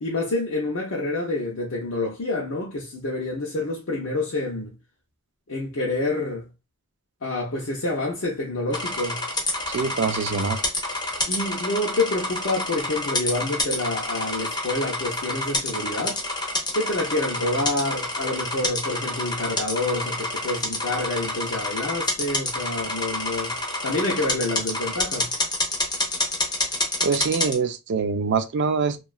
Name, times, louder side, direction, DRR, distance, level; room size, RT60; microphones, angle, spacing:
voice 1, 0.0-4.7 5.5-6.5 7.2-9.2 11.3-16.2 16.7-25.3, left 2 dB, 60° left, 0.7 m, -28 dB
sound 1, 8.7-27.5, left 2 dB, 20° left, 0.7 m, -28 dB
voice 2, 9.7-10.6 27.0-29.0, right 5 dB, 55° right, 0.4 m, -24 dB
2.9 x 2.3 x 2.3 m
head